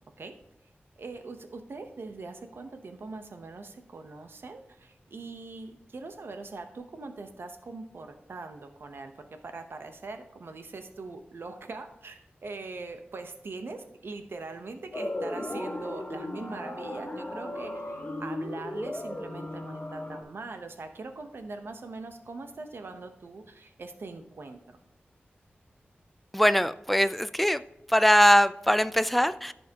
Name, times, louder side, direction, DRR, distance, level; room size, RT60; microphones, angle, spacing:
voice 1, 1.0-24.8, right 3 dB, 75° right, 7 dB, 0.8 m, -42 dB
sound 1, 14.9-20.2, left 1 dB, 35° left, 1.3 m, -36 dB
voice 2, 26.3-27.6 27.9-29.5, equal, 5° left, 13 dB, 0.3 m, -21 dB
14.0 x 5.5 x 2.9 m, 0.84 s
wide cardioid pair, 105°, 4 cm